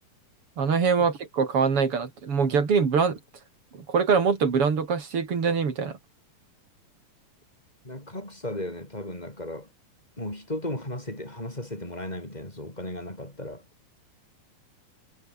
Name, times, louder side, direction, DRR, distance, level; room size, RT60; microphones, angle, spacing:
voice 1, 0.6-3.2 3.7-6.0, right 5 dB, 40° right, 3.6 m, -24 dB
voice 2, 7.8-9.7 10.2-13.6, left 1 dB, 10° left, 7.2 m, -35 dB
omnidirectional pair, 4.4 m